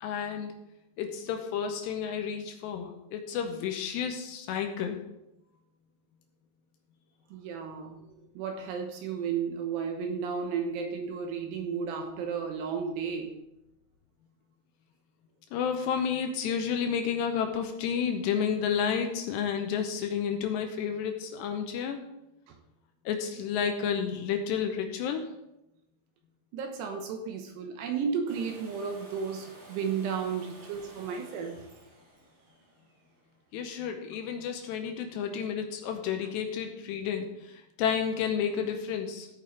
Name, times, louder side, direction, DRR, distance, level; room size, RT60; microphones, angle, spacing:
voice 1, 0.0-0.5 1.0-5.0 15.5-22.0 23.1-25.3 33.5-39.3, left 7 dB, 80° left, 5 dB, 2.7 m, -31 dB
voice 2, 7.3-13.4 22.5-22.6 26.5-31.7, right 6 dB, 75° right, 4 dB, 2.8 m, -33 dB
Domestic sounds home sounds, 28.3-34.1 36.0-36.1, right 2 dB, 55° right, 5.4 m, -53 dB
15.0 x 8.8 x 3.2 m, 0.89 s
omnidirectional pair, 5.4 m